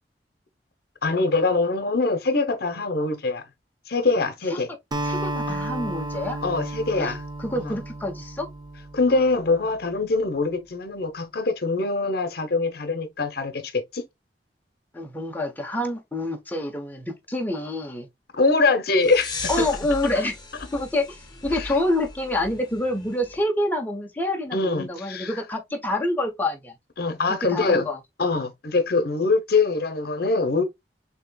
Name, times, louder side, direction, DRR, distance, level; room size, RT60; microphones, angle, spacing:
voice 1, 1.0-3.4 3.9-4.7 5.5-5.6 6.4-7.2 7.5-7.8 8.9-14.0 18.3-19.7 21.5-21.7 24.5-25.4 27.0-27.9 28.2-30.6, left 3 dB, 60° left, 0.8 m, -23 dB
Acoustic guitar, 4.9-9.4, right 1 dB, 25° right, 0.6 m, -32 dB
voice 2, 5.1-6.4 7.0-7.1 7.4-8.5 14.9-18.1 19.5-20.3 20.7-26.7 27.5-28.0, left 1 dB, 10° left, 0.9 m, -27 dB
sound 1, 19.0-23.4, left 3 dB, 25° left, 1.3 m, -38 dB
6.5 x 2.8 x 2.3 m
head